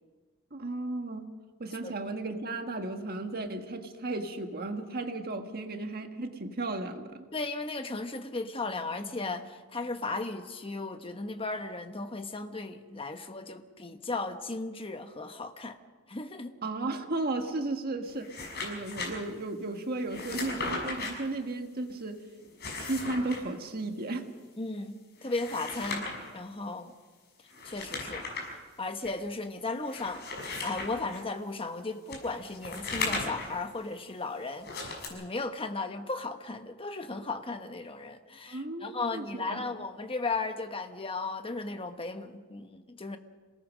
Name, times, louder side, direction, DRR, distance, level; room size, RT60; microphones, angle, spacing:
voice 1, 0.5-1.3 1.6-7.3 16.6-18.3 18.6-22.2 22.8-24.3 38.5-39.7, right 2 dB, 45° right, 6 dB, 1.5 m, -34 dB
voice 2, 7.3-15.8 16.1-16.5 24.6-26.9 27.6-28.2 28.8-30.2 30.6-43.2, left 3 dB, 25° left, 7 dB, 1.2 m, -36 dB
sound 1, 18.1-19.1 20.1-21.1 22.4-23.4 25.2-26.3 27.5-28.5 29.0-29.1 29.8-31.2 32.1-33.6 34.6-35.1, left 3 dB, 50° left, 6.3 m, -36 dB
27.5 x 18.5 x 6.4 m, 1.4 s
head